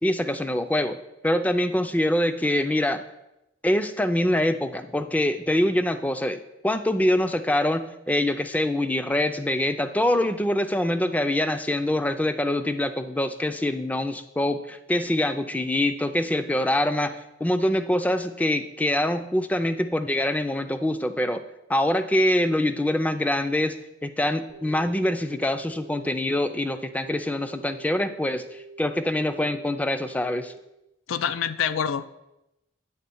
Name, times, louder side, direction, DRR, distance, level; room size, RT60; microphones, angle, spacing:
voice 1, 0.0-1.0 1.2-3.0 3.6-21.4 21.7-23.8 24.0-30.5, left 1 dB, 10° left, 9 dB, 0.4 m, -24 dB
sound 1, 24.5-30.6, right 4 dB, 55° left, 1.2 m, -46 dB
voice 2, 31.1-32.1, left 7 dB, 85° left, 13 dB, 0.4 m, -26 dB
8.6 x 3.7 x 6.9 m, 0.89 s
head